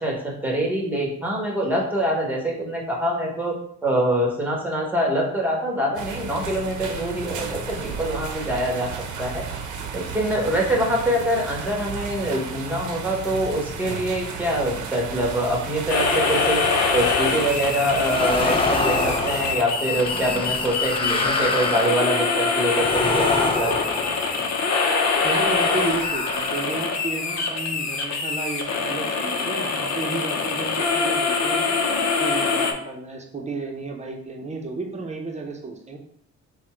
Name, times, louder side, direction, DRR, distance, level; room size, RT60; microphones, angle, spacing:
voice 1, 0.0-3.5 3.8-8.9 9.2-9.4 9.9-16.6 16.9-23.7, right 1 dB, 5° right, -2 dB, 1.3 m, -24 dB
sound 1, 6.0-19.6, right 5 dB, 75° right, 0.7 m, -33 dB
sound 2, 15.9-32.7, left 4 dB, 65° left, 0.8 m, -24 dB
sound 3, 18.0-24.8 25.5-27.3, left 3 dB, 20° left, 0.5 m, -27 dB
voice 2, 25.2-31.8 32.2-36.0, right 3 dB, 25° right, 2 dB, 0.9 m, -32 dB
4.1 x 2.3 x 4.5 m, 0.67 s
cardioid pair, 90°, 30 cm